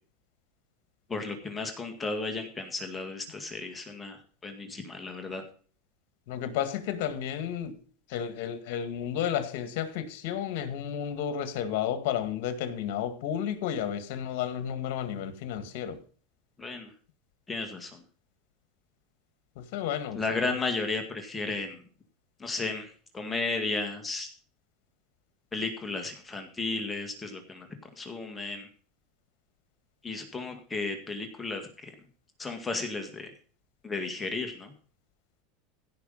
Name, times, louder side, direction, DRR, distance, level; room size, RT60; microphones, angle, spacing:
voice 1, 1.1-5.4 16.6-16.9 17.5-18.0 20.1-21.8 22.4-24.3 25.5-27.7 28.0-28.7 30.0-31.9 32.4-33.3 33.8-34.7, left 3 dB, 15° left, 2.0 m, -34 dB
voice 2, 6.3-7.8 8.1-16.0 19.6-20.6, left 9 dB, 65° left, 2.1 m, -32 dB
16.0 x 5.9 x 5.6 m
supercardioid pair, 135°, 0 cm